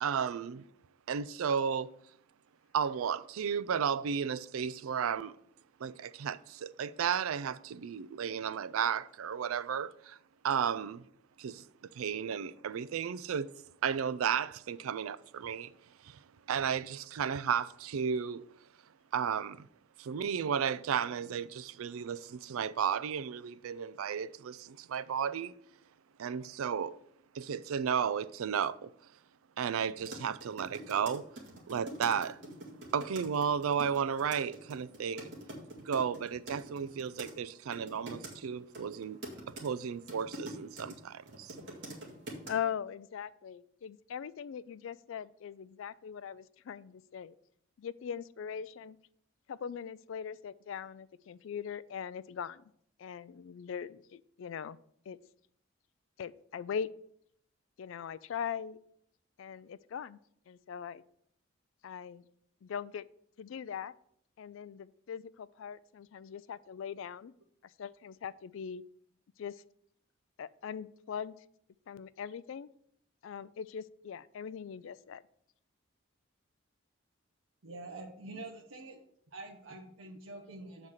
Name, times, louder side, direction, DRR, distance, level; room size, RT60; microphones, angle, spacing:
voice 1, 0.0-0.6 1.1-1.9 2.7-5.3 5.8-10.2 10.4-11.0 11.4-11.6 11.9-13.5 13.8-15.7 16.0-16.2 16.5-18.4 19.1-19.7 20.0-25.5 26.2-27.0 27.3-28.9 29.6-31.2 31.7-32.4 32.9-35.3 35.8-39.2 39.6-41.6, right 7 dB, 85° right, 0.4 m, -33 dB
sound 1, 30.0-37.3 37.7-38.4 38.7-40.9 41.3-42.5, right 1 dB, 55° right, 1.9 m, -45 dB
voice 2, 42.5-47.3 47.8-49.0 49.5-52.6 53.0-54.8 55.1-55.2 56.2-56.9 57.8-58.8 59.4-60.2 60.5-61.0 61.8-62.2 62.6-63.0 63.4-63.9 64.4-67.3 67.8-68.8 69.4-69.6 70.4-71.3 71.9-72.7 73.2-75.2, left 7 dB, 70° left, 0.3 m, -40 dB
voice 3, 77.6-79.0 79.3-80.9, right 2 dB, 70° right, 0.8 m, -46 dB
7.3 x 4.0 x 6.3 m
head